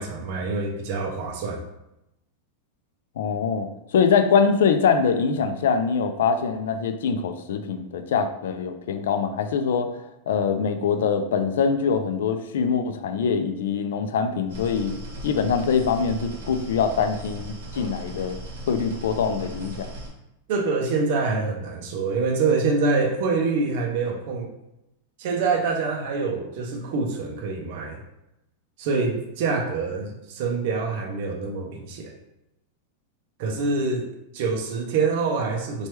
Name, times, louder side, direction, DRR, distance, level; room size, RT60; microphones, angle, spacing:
voice 1, 0.0-1.6 20.5-24.5 25.2-28.0 28.8-32.1 33.4-35.9, right 4 dB, 45° right, 1 dB, 0.4 m, -25 dB
voice 2, 3.2-14.9 15.2-18.4 18.7-19.9, left 6 dB, 80° left, 8 dB, 0.3 m, -23 dB
sound 1, 14.5-20.1, right 1 dB, 85° right, 0.8 m, -38 dB
3.1 x 2.2 x 3.0 m, 0.88 s
supercardioid pair, 175°, 0 cm